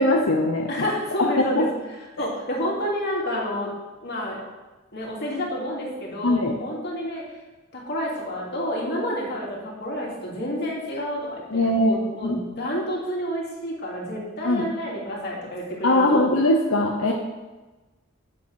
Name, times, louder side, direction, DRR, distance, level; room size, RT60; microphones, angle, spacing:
voice 1, 0.0-0.9 1.2-1.7 2.2-2.3 6.2-6.5 11.5-12.4 14.4-14.7 15.8-17.1, left 1 dB, 85° left, 1 dB, 0.9 m, -21 dB
voice 2, 0.7-1.7 2.2-3.7 4.0-4.4 4.9-7.2 7.7-16.3 17.0-17.1, equal, 55° left, -3 dB, 2.7 m, -29 dB
8.5 x 7.0 x 6.3 m, 1.2 s
head